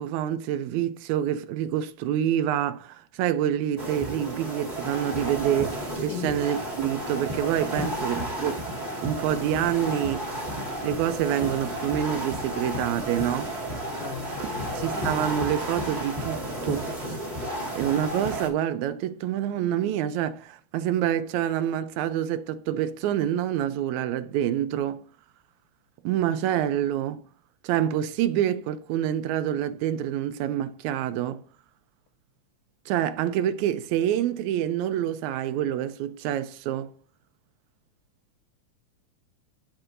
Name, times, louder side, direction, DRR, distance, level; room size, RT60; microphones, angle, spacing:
voice 1, 0.0-8.6 9.0-10.3 10.8-13.5 14.4-14.5 14.7-16.9 17.7-25.0 26.0-27.2 27.6-31.4 32.9-36.9, right 11 dB, 85° right, 1.7 m, -27 dB
sound 1, 3.8-18.5, right 1 dB, 25° right, 1.1 m, -32 dB
voice 2, 14.0-14.9, left 11 dB, 85° left, 2.2 m, -36 dB
12.0 x 4.4 x 2.5 m
omnidirectional pair, 3.8 m